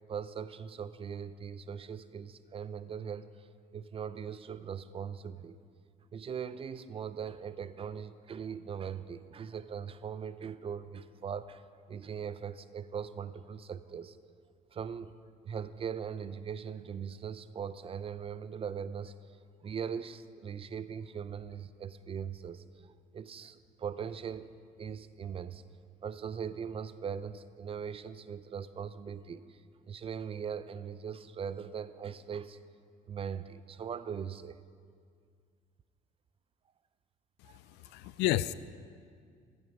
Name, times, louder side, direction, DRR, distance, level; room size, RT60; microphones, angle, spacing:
voice 1, 0.1-3.5 3.7-5.6 6.1-11.6 11.9-14.2 14.7-15.1 15.4-19.2 19.6-22.6 23.1-24.5 24.8-25.6 26.0-29.6 29.9-32.6 33.1-34.6 37.4-37.6 37.8-37.9, right 7 dB, 35° right, 14 dB, 0.5 m, -40 dB
voice 2, 37.5-38.5, left 15 dB, 90° left, 17 dB, 0.4 m, -31 dB
15.5 x 7.9 x 5.3 m, 2.2 s
cardioid pair, 110°, 17 cm